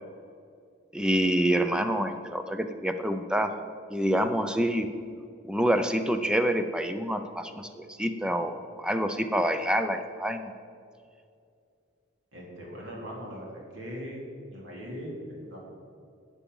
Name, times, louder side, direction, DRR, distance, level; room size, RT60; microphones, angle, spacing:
voice 1, 0.9-3.5 3.9-4.9 5.5-10.5, right 1 dB, 5° right, 8 dB, 0.5 m, -27 dB
voice 2, 12.3-14.2 14.5-15.7, equal, 70° right, -3 dB, 3.1 m, -40 dB
11.5 x 8.3 x 5.5 m, 2.4 s
head